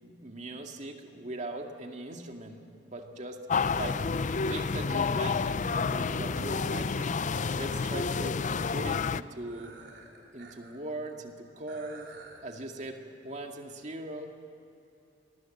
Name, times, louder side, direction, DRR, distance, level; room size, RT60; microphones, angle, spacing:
voice 1, 0.0-3.4 3.7-4.1 4.5-7.2 7.5-8.4 8.7-9.7 10.3-12.1 12.4-14.3, right 1 dB, 40° right, 3 dB, 2.1 m, -40 dB
Hotel Window Krabi town Thailand Ambience..., 3.5-9.2, left 4 dB, 45° left, 0.5 m, -29 dB
sound 1, 5.7-8.5 9.4-10.8 11.1-11.2 11.7-12.4, right 3 dB, 70° right, 3.5 m, -53 dB
27.0 x 20.0 x 7.8 m, 2.7 s
head